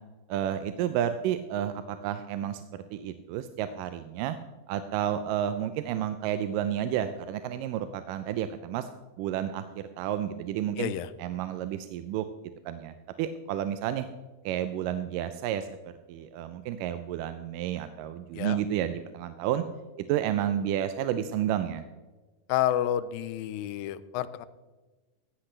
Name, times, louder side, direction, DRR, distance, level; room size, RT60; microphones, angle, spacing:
voice 1, 0.3-4.4 4.7-8.9 9.2-10.9 11.2-12.2 12.7-14.1 14.5-15.7 16.1-19.6 20.1-21.8, right 10 dB, 80° right, 10 dB, 2.1 m, -31 dB
voice 2, 10.8-11.1 18.3-18.6 22.5-24.5, left 12 dB, 85° left, 15 dB, 2.3 m, -29 dB
16.0 x 12.0 x 3.3 m, 1.2 s
omnidirectional pair, 4.0 m